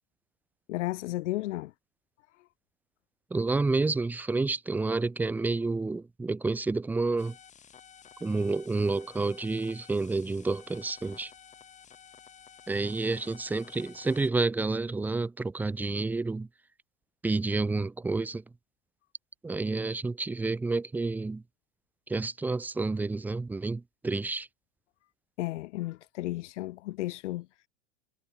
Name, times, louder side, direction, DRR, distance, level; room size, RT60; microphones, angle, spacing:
voice 1, 0.7-1.7 25.4-27.5, left 17 dB, 80° left, 0.8 m, -33 dB
voice 2, 3.3-7.4 8.2-11.3 12.7-16.5 17.2-18.4 19.4-21.4 22.1-24.5, right 3 dB, 5° right, 0.4 m, -29 dB
sound 1, 7.2-14.3, left 8 dB, 20° left, 1.7 m, -53 dB
supercardioid pair, 125°, 35 cm